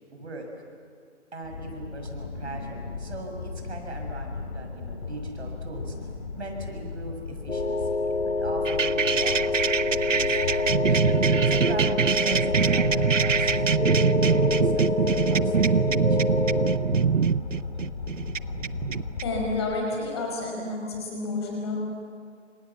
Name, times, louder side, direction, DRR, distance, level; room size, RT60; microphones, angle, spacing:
voice 1, 0.1-0.7 1.3-6.1 6.4-11.0 11.5-16.4, right 2 dB, 65° right, 2 dB, 6.9 m, -40 dB
sound 1, 1.4-19.6, left 4 dB, 40° left, 3.9 m, -36 dB
sound 2, 7.5-16.8, left 3 dB, 85° left, 6.4 m, -27 dB
sound 3, 8.7-19.2, right 7 dB, 90° right, 0.9 m, -24 dB
voice 2, 19.2-21.8, left 3 dB, 20° left, -1 dB, 5.3 m, -30 dB
30.0 x 27.0 x 7.3 m, 2.1 s
hypercardioid pair, 175°, 37 cm